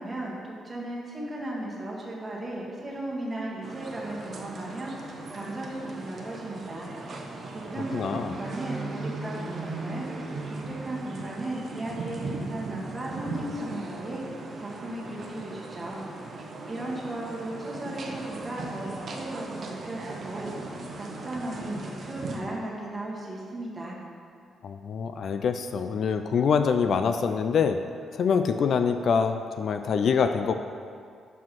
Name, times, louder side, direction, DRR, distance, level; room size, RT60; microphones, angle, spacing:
voice 1, 0.0-4.9 5.3-6.9 7.5-10.0 10.5-14.2 14.6-16.0 16.7-20.7 20.9-24.0, right 1 dB, 20° right, -5 dB, 1.7 m, -36 dB
sound 1, 3.6-22.4, right 3 dB, 50° right, 0.9 m, -38 dB
voice 2, 7.9-8.3 24.6-27.8 28.1-30.5, left 6 dB, 60° left, 8 dB, 0.3 m, -25 dB
5.6 x 5.0 x 6.1 m, 2.3 s
cardioid pair, 100°, 0 cm